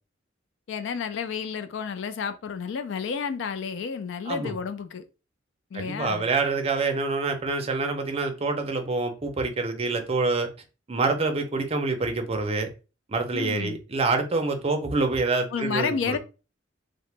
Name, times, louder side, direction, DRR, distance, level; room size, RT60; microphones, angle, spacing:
voice 1, 0.7-5.1 5.7-6.3 13.3-13.8 15.5-16.2, left 6 dB, 75° left, 0.4 m, -31 dB
voice 2, 4.3-4.6 5.7-10.5 10.9-12.7 13.1-16.2, right 3 dB, 35° right, 0.5 m, -26 dB
2.8 x 2.1 x 3.2 m
head